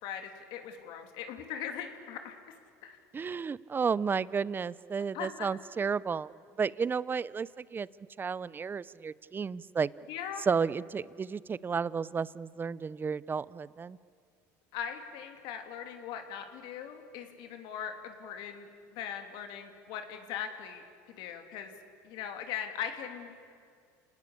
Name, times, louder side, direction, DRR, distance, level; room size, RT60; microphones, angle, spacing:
voice 1, 0.0-2.5 2.8-3.0 5.1-5.5 10.1-10.5 14.7-20.8 21.2-21.7 22.0-23.3, left 8 dB, 70° left, 5 dB, 3.0 m, -40 dB
voice 2, 3.1-6.3 6.6-7.9 8.2-9.9 10.5-14.0, right 5 dB, 25° right, 20 dB, 0.6 m, -32 dB
29.0 x 19.0 x 8.5 m, 2.3 s
supercardioid pair, 95°, 9 cm